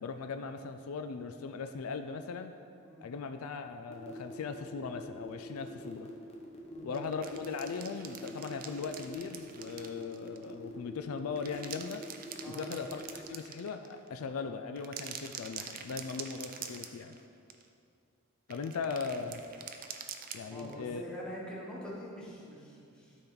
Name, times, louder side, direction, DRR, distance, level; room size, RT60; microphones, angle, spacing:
voice 1, 0.0-2.5 3.0-6.1 6.8-12.0 12.5-17.2 18.5-19.4 20.3-21.0, left 5 dB, 70° left, 7 dB, 0.4 m, -39 dB
sound 1, 3.9-13.2, left 1 dB, 30° left, 1.1 m, -47 dB
sound 2, 6.9-10.5 11.2-14.1 14.8-17.2 17.5-17.7 18.5-20.8, right 8 dB, 40° right, 0.5 m, -45 dB
voice 2, 20.4-23.2, equal, 5° left, -6 dB, 1.5 m, -44 dB
12.0 x 4.3 x 3.9 m, 2.5 s
head